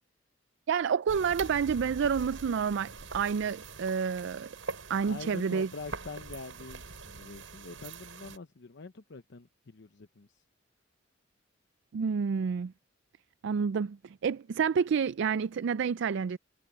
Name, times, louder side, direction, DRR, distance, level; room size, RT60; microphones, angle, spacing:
voice 1, 0.7-4.6 4.9-5.7 11.9-12.7 13.4-16.4, right 6 dB, 65° right, 0.4 m, -29 dB
sound 1, 1.1-8.4, right 4 dB, 85° right, 5.9 m, -44 dB
voice 2, 5.1-10.3, left 4 dB, 65° left, 0.8 m, -45 dB
head